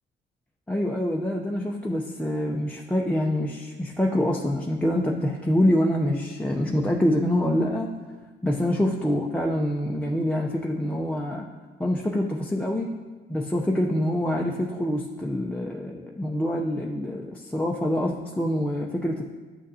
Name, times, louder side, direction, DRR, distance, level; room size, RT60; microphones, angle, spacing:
voice 1, 0.7-7.9 8.4-11.5 11.8-12.9 13.3-19.2, left 1 dB, 5° left, -2 dB, 0.6 m, -25 dB
11.0 x 6.3 x 2.7 m, 1.4 s
cardioid pair, 90°, 20 cm